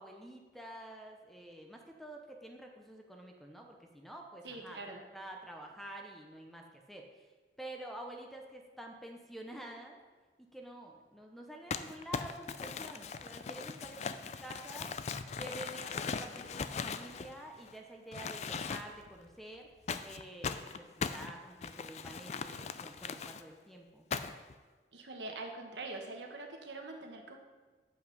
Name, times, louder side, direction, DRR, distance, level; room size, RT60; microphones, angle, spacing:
voice 1, 0.0-4.8 5.1-7.3 7.6-10.0 10.4-14.9 15.4-19.7 20.0-24.0, right 1 dB, ahead, 2 dB, 0.7 m, -48 dB
voice 2, 4.4-5.0 24.9-27.4, right 2 dB, 85° right, 2 dB, 1.2 m, -44 dB
Crumpling crinkling, 11.7-17.7 18.1-19.1 19.9-23.4 24.1-24.5, left 5 dB, 40° left, 0.3 m, -39 dB
8.3 x 5.4 x 5.4 m, 1.3 s
head